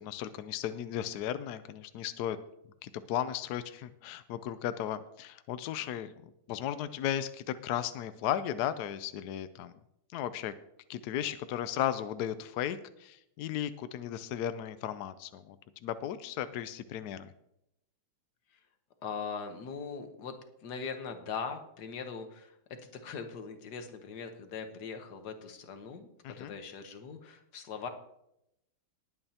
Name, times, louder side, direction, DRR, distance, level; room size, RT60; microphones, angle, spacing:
voice 1, 0.0-2.4 2.8-9.7 10.1-10.5 10.9-15.6 15.8-17.3 26.2-26.5, left 11 dB, 80° left, 12 dB, 0.9 m, -35 dB
voice 2, 19.0-20.3 20.6-22.6 22.9-27.9, left 5 dB, 55° left, 7 dB, 1.5 m, -41 dB
19.5 x 8.9 x 2.8 m, 0.80 s
omnidirectional pair, 2.3 m